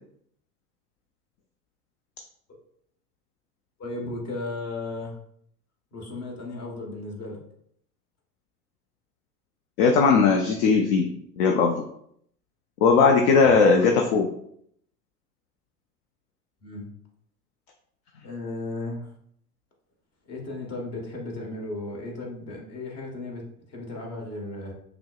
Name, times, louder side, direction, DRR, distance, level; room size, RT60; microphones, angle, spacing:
voice 1, 3.8-5.2 5.9-7.4 13.3-13.7 16.6-16.9 18.2-19.1 20.2-24.7, left 2 dB, 35° left, 0 dB, 1.2 m, -35 dB
voice 2, 9.8-11.1 11.4-11.8 12.8-14.3, left 5 dB, 50° left, 2 dB, 0.5 m, -18 dB
5.8 x 2.0 x 2.3 m, 0.69 s
hypercardioid pair, 85°, 47 cm